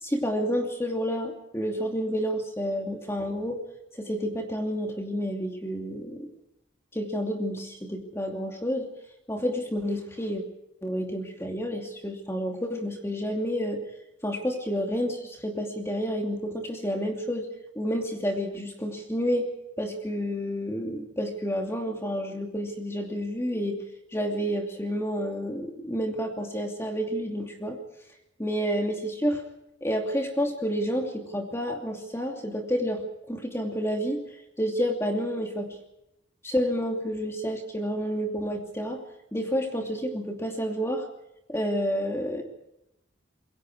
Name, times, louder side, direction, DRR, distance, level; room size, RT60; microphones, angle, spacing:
voice 1, 0.0-3.6 4.0-6.3 6.9-8.9 9.3-10.4 10.8-13.8 14.2-17.5 17.8-19.5 19.8-23.8 24.1-27.8 28.4-29.4 29.8-33.0 33.3-34.2 34.6-35.7 36.4-39.0 39.3-41.0 41.5-42.4, equal, 15° left, 2 dB, 2.7 m, -29 dB
27.0 x 22.5 x 4.8 m, 0.84 s
head